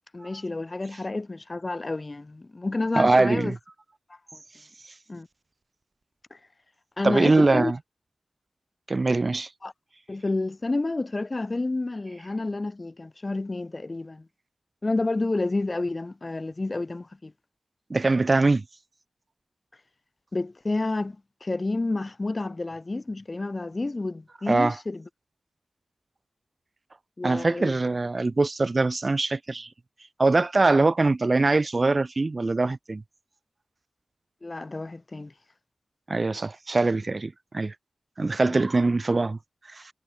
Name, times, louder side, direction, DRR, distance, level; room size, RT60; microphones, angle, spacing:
voice 1, 0.1-3.6 5.1-5.3 6.3-6.4 7.0-7.7 9.6-9.7 10.1-14.2 14.8-17.3 20.3-21.2 21.4-25.0 27.2-27.8 34.4-35.3 38.5-38.6, left 2 dB, 35° left, 6.2 m, -29 dB
voice 2, 2.9-3.6 7.0-7.8 8.9-9.5 17.9-18.6 24.5-24.8 27.2-29.7 30.2-33.0 36.1-37.7 38.2-39.4 39.7-39.8, right 3 dB, 40° right, 6.3 m, -22 dB
wide cardioid pair, 100°, 0 cm